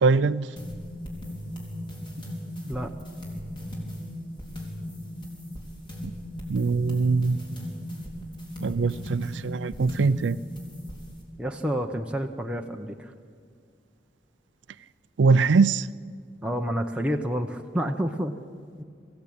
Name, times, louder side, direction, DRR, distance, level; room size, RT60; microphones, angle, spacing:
voice 1, 0.0-0.5 6.5-7.4 8.6-10.4 15.2-15.9, right 4 dB, 75° right, 15 dB, 0.4 m, -22 dB
sound 1, 0.6-11.2, equal, 25° left, 3.7 m, -37 dB
voice 2, 11.4-13.1 16.4-18.3 18.8-18.9, equal, 5° right, 2 dB, 0.8 m, -29 dB
23.0 x 15.5 x 8.6 m, 2.2 s
head